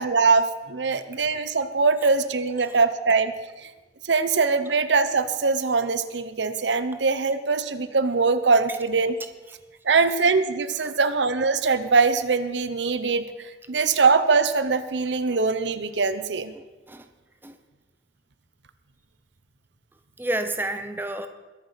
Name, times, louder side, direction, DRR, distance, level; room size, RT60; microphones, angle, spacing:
voice 1, 0.0-3.3 4.0-9.1 9.8-13.2 13.7-16.5, right 4 dB, 85° right, 11 dB, 0.9 m, -22 dB
voice 2, 20.2-21.3, right 1 dB, 10° right, 7 dB, 0.8 m, -30 dB
21.5 x 7.3 x 5.9 m, 1.2 s
head